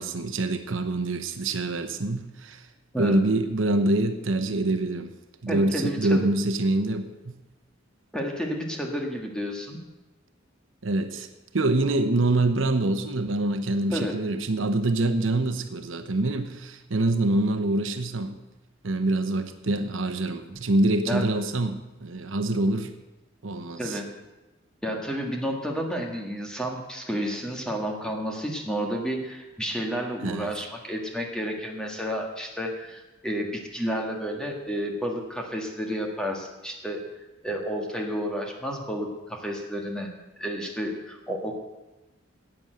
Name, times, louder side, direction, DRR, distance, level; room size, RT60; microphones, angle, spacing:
voice 1, 0.0-2.6 3.0-5.1 5.4-7.4 10.8-11.3 11.5-18.4 18.8-22.9 23.4-24.0 30.2-30.5, right 2 dB, 75° right, 8 dB, 0.9 m, -25 dB
voice 2, 5.5-6.2 8.1-9.8 13.9-14.2 21.1-21.3 23.8-24.2 24.8-40.1 40.4-41.5, equal, 5° left, 1 dB, 1.6 m, -31 dB
10.5 x 8.9 x 7.8 m, 1.1 s
head